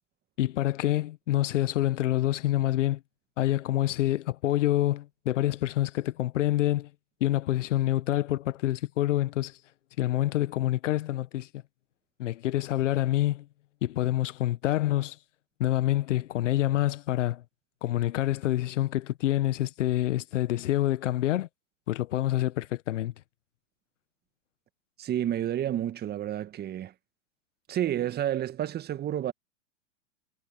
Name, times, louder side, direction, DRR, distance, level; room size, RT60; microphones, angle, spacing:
voice 1, 0.4-3.0 3.4-6.9 7.2-9.5 10.0-11.5 12.2-13.4 13.8-15.2 15.6-17.4 17.8-21.5 21.9-23.1, left 14 dB, 60° left, 1.4 m, -27 dB
voice 2, 25.0-26.9 27.7-29.3, right 11 dB, 25° right, 1.7 m, -30 dB
hypercardioid pair, 115°, 40 cm